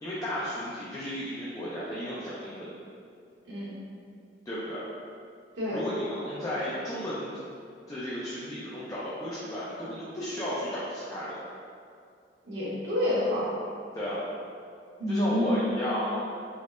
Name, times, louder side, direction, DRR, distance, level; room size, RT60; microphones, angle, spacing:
voice 1, 0.0-2.7 4.5-4.8 5.7-7.4 7.9-11.4 13.9-14.2 15.1-16.3, equal, 20° left, -9 dB, 0.4 m, -33 dB
voice 2, 3.4-3.7 5.5-5.8 12.4-13.5 15.0-15.8, left 1 dB, 80° right, -9 dB, 1.2 m, -28 dB
3.5 x 3.2 x 2.5 m, 2.4 s
head